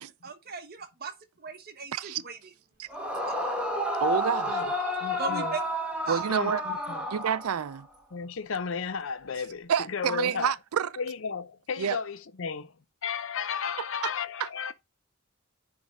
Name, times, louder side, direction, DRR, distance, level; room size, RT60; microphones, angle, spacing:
voice 1, 0.2-1.1 1.4-2.5 3.3-3.4 5.2-5.6 6.0-6.2, right 5 dB, 45° right, 1.0 m, -37 dB
voice 2, 1.9-2.2 2.8-2.9 4.0-4.6 6.1-6.6 7.1-7.9 9.7-10.9 11.8-12.0 14.0-14.1 14.4-14.5, right 8 dB, 90° right, 0.4 m, -28 dB
Yell / Screaming, 2.9-7.8, left 1 dB, 5° right, 1.4 m, -31 dB
voice 3, 5.0-5.5 6.3-7.1 8.1-10.5 11.0-12.7 13.0-14.7, left 6 dB, 60° left, 0.6 m, -34 dB
9.6 x 3.5 x 4.0 m
head